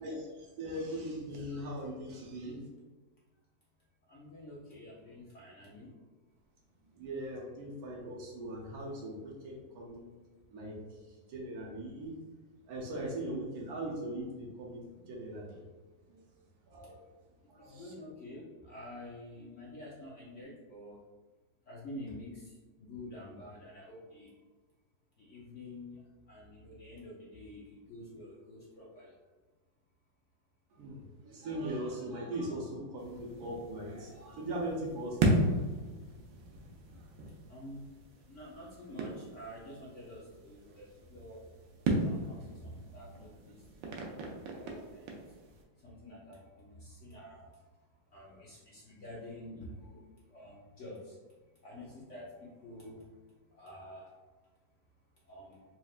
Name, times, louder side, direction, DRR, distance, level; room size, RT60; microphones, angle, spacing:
voice 1, 0.0-2.6 6.9-10.1 10.5-11.0 11.3-12.2 12.7-15.6 16.1-16.2 16.7-17.0 17.5-17.8 30.8-35.5, right 1 dB, 65° right, -2 dB, 1.0 m, -40 dB
voice 2, 4.1-5.9 17.7-21.0 21.7-22.3 22.8-24.3 25.3-25.9 26.3-29.1 37.5-37.9 38.3-40.8 41.1-41.4 42.0-43.5 43.8-45.0 45.8-47.4 48.1-50.0 50.3-51.0 51.6-52.2 52.6-53.0 53.5-54.0 55.3-55.6, left 1 dB, 60° left, -5 dB, 0.8 m, -48 dB
sound 1, 33.0-45.6, right 1 dB, 90° right, 1.4 m, -36 dB
4.3 x 3.0 x 2.3 m, 1.3 s
omnidirectional pair, 2.0 m